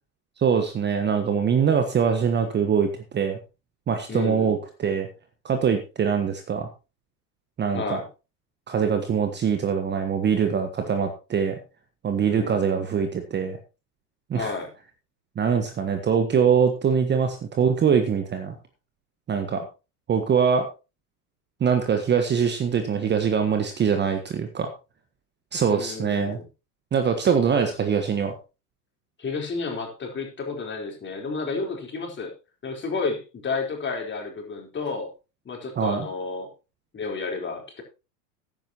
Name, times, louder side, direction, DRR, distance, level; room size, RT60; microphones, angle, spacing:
voice 1, 0.4-3.4 3.9-5.1 5.4-6.7 7.6-8.0 8.7-11.6 12.0-13.6 14.3-14.6 15.4-18.5 19.3-19.6 20.1-20.7 21.6-24.7 25.5-26.4 26.9-28.3 35.8-36.1, right 7 dB, 20° right, 7 dB, 1.3 m, -23 dB
voice 2, 4.1-4.5 7.7-8.1 12.2-12.6 14.3-14.7 25.7-26.5 29.2-32.3 32.6-35.1 35.5-36.5 36.9-37.8, left 4 dB, 25° left, 1 dB, 4.0 m, -31 dB
14.0 x 10.5 x 3.0 m, 0.31 s
hypercardioid pair, 95°, 48 cm